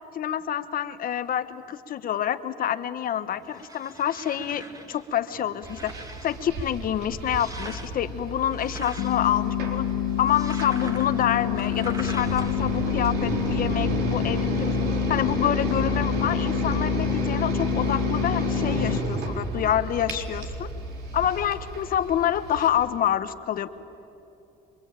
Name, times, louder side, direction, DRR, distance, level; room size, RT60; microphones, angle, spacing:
voice 1, 0.1-5.9 6.2-9.9 10.2-14.8 15.1-20.7 21.1-23.7, left 10 dB, 55° left, 11 dB, 1.3 m, -27 dB
sound 1, 3.2-12.9, right 2 dB, 20° right, 2.2 m, -43 dB
sound 2, 5.6-22.7, right 2 dB, 75° right, 4.1 m, -31 dB
sound 3, 9.0-19.0, left 14 dB, 85° left, 1.0 m, -28 dB
27.5 x 24.0 x 8.9 m, 2.9 s
cardioid pair, 110°, 17 cm